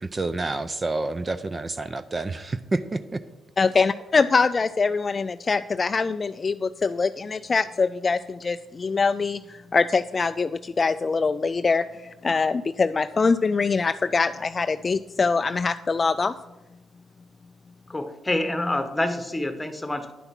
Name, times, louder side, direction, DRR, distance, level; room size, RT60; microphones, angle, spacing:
voice 1, 0.0-3.2, right 2 dB, 25° right, 12 dB, 0.5 m, -28 dB
voice 2, 3.6-11.9 12.2-16.3, left 4 dB, 35° left, 12 dB, 0.3 m, -23 dB
voice 3, 17.9-20.1, left 1 dB, 10° left, 8 dB, 1.2 m, -27 dB
10.0 x 7.9 x 6.0 m, 1.1 s
cardioid pair, 90°, 0 cm